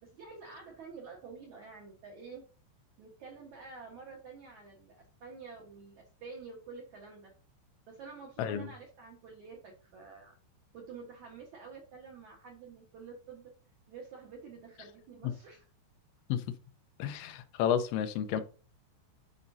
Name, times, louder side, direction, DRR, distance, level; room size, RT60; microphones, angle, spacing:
voice 1, 0.0-2.4 3.0-7.3 7.9-10.4 10.7-13.5 13.9-15.7, right 5 dB, 65° right, 2.0 m, -49 dB
voice 2, 17.0-18.4, left 9 dB, 85° left, 3.2 m, -31 dB
12.0 x 5.3 x 2.7 m
omnidirectional pair, 5.2 m